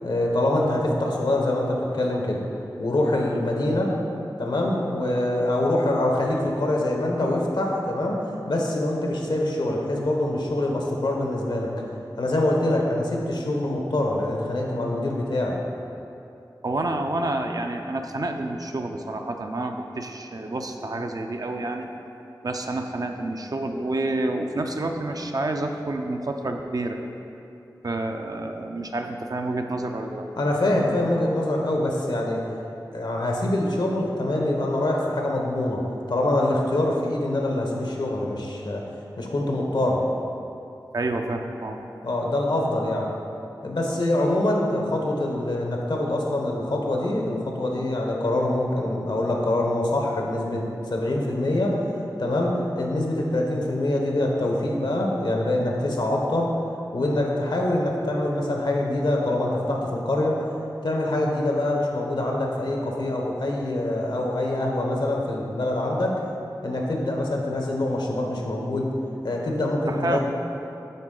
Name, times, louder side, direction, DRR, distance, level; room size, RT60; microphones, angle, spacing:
voice 1, 0.0-2.4 2.8-3.9 4.4-11.7 12.2-15.6 30.4-32.4 32.9-35.8 36.1-38.8 39.2-40.0 42.0-43.1 43.6-51.8 52.2-56.5 56.9-60.5 60.8-66.2 66.6-68.9 69.2-70.2, left 1 dB, 75° left, -1 dB, 1.0 m, -24 dB
voice 2, 16.6-21.9 22.4-27.0 27.8-30.3 40.9-41.8 69.9-70.2, right 2 dB, 55° right, 4 dB, 0.5 m, -29 dB
9.7 x 3.6 x 3.8 m, 2.8 s
wide cardioid pair, 50°, 8 cm